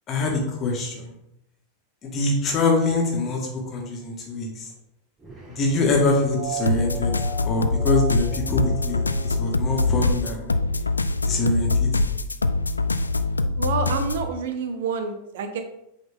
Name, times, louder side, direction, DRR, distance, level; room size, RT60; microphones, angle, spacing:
voice 1, 0.1-1.1 2.0-4.7 5.5-7.1 7.4-10.5 11.2-12.2, left 2 dB, 30° left, 0 dB, 1.9 m, -24 dB
sound 1, 5.2-10.7, right 2 dB, 15° right, 1.9 m, -38 dB
sound 2, 6.6-14.3, left 3 dB, 80° left, 0.3 m, -23 dB
voice 2, 13.6-15.6, right 5 dB, 55° right, 7 dB, 0.8 m, -28 dB
7.8 x 4.1 x 3.7 m, 0.82 s
figure-of-eight pair, 90°, 0 cm